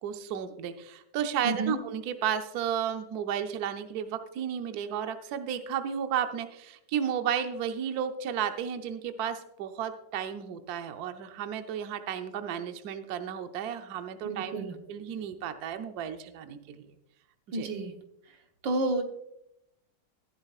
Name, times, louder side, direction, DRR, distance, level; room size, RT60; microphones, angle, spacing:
voice 1, 0.0-14.6 14.9-16.9 17.5-17.7, right 9 dB, 65° right, 7 dB, 1.2 m, -33 dB
voice 2, 1.4-1.8 14.2-14.8 17.5-17.9 18.6-19.0, right 2 dB, 90° right, 5 dB, 1.9 m, -30 dB
14.0 x 11.0 x 2.4 m, 0.81 s
omnidirectional pair, 1.9 m